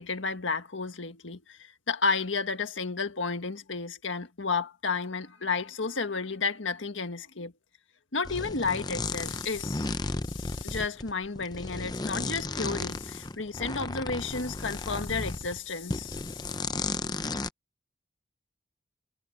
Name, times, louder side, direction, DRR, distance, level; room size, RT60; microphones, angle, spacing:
voice 1, 0.0-7.5 8.1-9.9 10.3-16.6, left 4 dB, 85° left, 1.7 m, -32 dB
sound 1, 8.2-15.6 15.9-17.5, left 3 dB, 20° left, 0.7 m, -34 dB
head